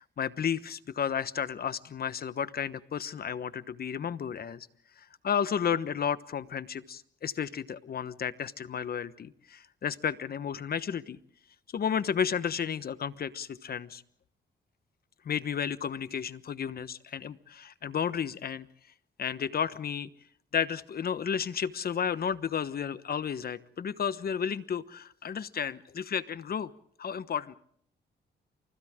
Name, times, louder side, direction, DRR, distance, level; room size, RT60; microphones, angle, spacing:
voice 1, 0.0-4.7 5.2-11.2 11.7-14.0 15.2-18.7 19.2-20.1 20.5-26.7 27.0-27.6, left 7 dB, 55° left, 14 dB, 1.2 m, -32 dB
29.5 x 27.0 x 3.7 m, 0.64 s
cardioid pair, 80°, 19 cm